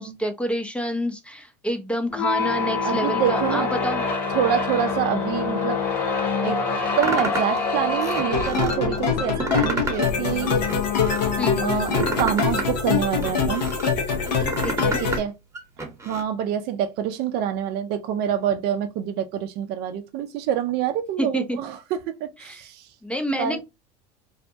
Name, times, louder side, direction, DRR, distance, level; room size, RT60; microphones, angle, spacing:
voice 1, 0.0-4.0 11.4-11.6 14.6-15.0 21.2-21.6 22.4-22.6 23.0-23.6, equal, 5° left, 0.5 m, -28 dB
sound 1, 2.1-12.4, left 4 dB, 45° left, 1.0 m, -27 dB
voice 2, 2.8-3.7 4.3-5.8 6.4-6.6 7.0-10.5 11.6-13.7 15.0-15.3 16.0-22.9 23.4-23.6, right 9 dB, 50° right, 0.5 m, -26 dB
sound 2, 7.0-7.6 8.0-8.8 9.2-10.1 10.4-11.3 11.7-13.9 14.3-15.2 15.5-16.2, right 2 dB, 15° right, 0.9 m, -30 dB
sound 3, 8.3-15.2, left 5 dB, 85° left, 0.9 m, -24 dB
2.7 x 2.1 x 2.6 m
hypercardioid pair, 85°, 21 cm